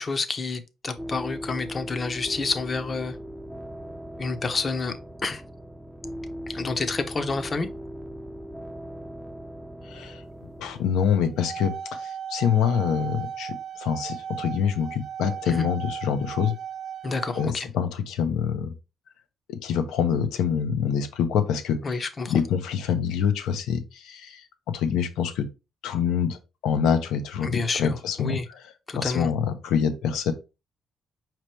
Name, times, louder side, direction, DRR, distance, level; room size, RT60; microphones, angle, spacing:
voice 1, 0.0-3.2 4.2-5.0 5.2-5.4 6.5-7.7 15.5-15.7 17.0-17.7 21.8-22.3 27.4-28.5 28.9-29.3, left 4 dB, 35° left, 0.7 m, -29 dB
sound 1, 1.0-11.1, equal, ahead, 0.5 m, -39 dB
voice 2, 9.9-10.2 10.6-16.6 17.4-18.7 19.5-25.5 25.8-28.6 28.9-30.3, left 7 dB, 90° left, 0.7 m, -26 dB
sound 2, 11.2-17.4, right 8 dB, 60° right, 0.9 m, -36 dB
5.1 x 3.0 x 3.2 m
cardioid pair, 90°, 0 cm